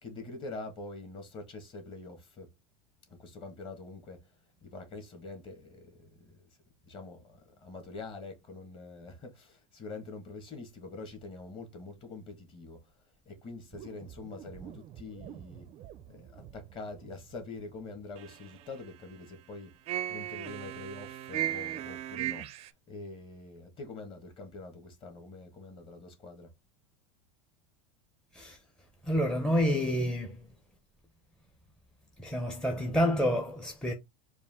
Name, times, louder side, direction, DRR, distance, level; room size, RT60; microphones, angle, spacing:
voice 1, 0.0-2.5 3.1-4.3 4.6-6.4 6.8-12.9 13.2-15.7 16.1-19.7 20.1-22.5 22.9-26.5, left 3 dB, 30° left, 1.7 m, -45 dB
sound 1, 13.7-17.8 18.2-19.1 19.9-22.7, right 12 dB, 35° right, 0.5 m, -39 dB
voice 2, 29.0-30.4 32.2-33.9, equal, 5° left, 0.6 m, -28 dB
4.6 x 2.5 x 3.6 m
supercardioid pair, 130°, 17 cm